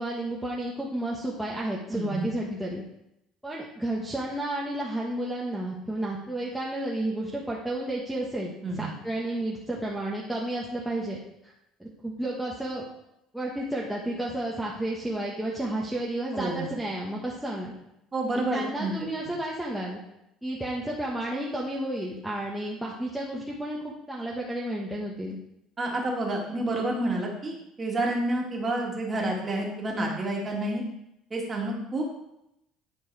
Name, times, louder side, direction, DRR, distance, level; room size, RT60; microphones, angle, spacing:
voice 1, 0.0-2.8 3.4-11.5 11.8-12.8 13.3-17.7 18.5-20.0 20.4-25.4, right 1 dB, 5° right, -5 dB, 1.1 m, -32 dB
voice 2, 1.9-2.3 8.6-8.8 16.3-16.7 18.1-18.9 25.8-30.8 31.3-32.1, right 2 dB, 25° right, -1 dB, 2.1 m, -29 dB
10.0 x 4.6 x 4.7 m, 0.84 s
cardioid pair, 125°, 0 cm